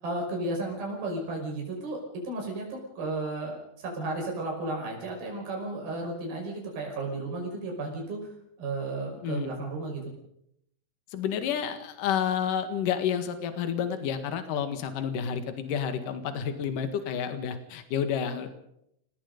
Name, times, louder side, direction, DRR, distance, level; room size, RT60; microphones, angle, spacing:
voice 1, 0.0-8.3 8.6-10.0, right 2 dB, 75° right, 0 dB, 7.3 m, -33 dB
voice 2, 9.2-9.5 11.1-18.6, left 8 dB, 65° left, 8 dB, 3.2 m, -30 dB
29.5 x 18.5 x 5.3 m, 0.77 s
omnidirectional pair, 4.2 m